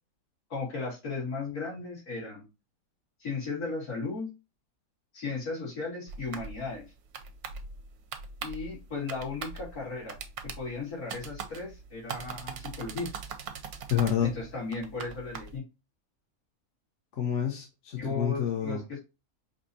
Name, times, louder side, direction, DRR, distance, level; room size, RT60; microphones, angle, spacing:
voice 1, 0.5-2.5 3.2-4.3 5.1-6.9 8.4-10.2 10.6-13.1 14.2-15.6 17.9-19.0, left 3 dB, 75° left, 3.0 m, -35 dB
sound 1, 6.1-15.6, right 6 dB, 80° right, 1.2 m, -42 dB
voice 2, 13.9-14.3 17.2-18.8, left 9 dB, 55° left, 1.1 m, -28 dB
5.3 x 2.9 x 2.6 m
omnidirectional pair, 1.6 m